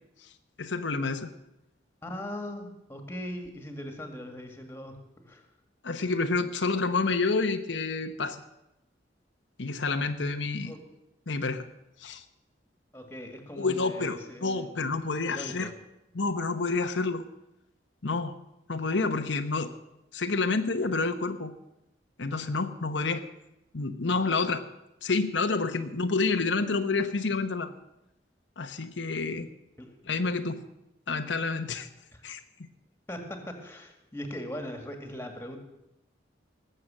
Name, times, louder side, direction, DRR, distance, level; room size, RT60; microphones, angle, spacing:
voice 1, 0.6-1.3 5.8-8.4 9.6-10.7 11.3-11.6 12.0-12.2 13.6-15.7 16.1-17.2 18.0-18.3 18.7-19.7 20.1-21.5 22.2-23.2 23.7-24.6 25.0-27.7 28.6-29.5 30.1-30.6 31.1-31.9 32.2-32.4, left 3 dB, 80° left, 7 dB, 1.0 m, -28 dB
voice 2, 2.0-5.0 5.2-5.5 10.7-10.8 12.9-14.8 15.3-15.7 29.8-30.0 32.1-32.2 33.1-35.6, left 1 dB, 10° left, 5 dB, 2.0 m, -40 dB
19.0 x 7.7 x 7.6 m, 0.89 s
head